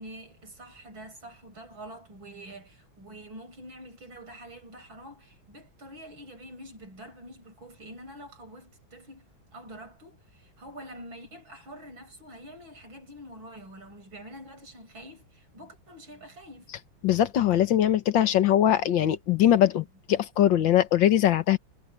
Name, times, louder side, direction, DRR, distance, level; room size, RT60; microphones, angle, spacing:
voice 1, 0.0-9.3 9.5-16.7, right 1 dB, 85° right, 8.0 m, -46 dB
voice 2, 17.0-21.6, left 11 dB, 75° left, 1.8 m, -22 dB
omnidirectional pair, 2.1 m